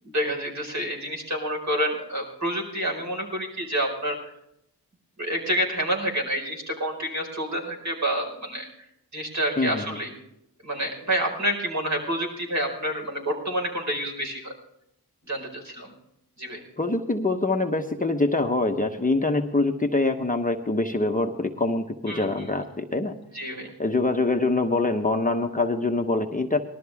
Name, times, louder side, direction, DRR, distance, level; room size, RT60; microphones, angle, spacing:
voice 1, 0.0-4.2 5.2-8.7 9.1-10.1 10.6-14.5 15.2-15.9 16.4-16.6 22.1-22.5 23.3-23.7, equal, 45° right, 0 dB, 5.0 m, -28 dB
voice 2, 9.6-10.0 16.8-23.1 23.8-26.6, left 2 dB, 20° left, 3 dB, 1.0 m, -24 dB
20.0 x 13.0 x 3.5 m, 0.79 s
cardioid pair, 70°, 40 cm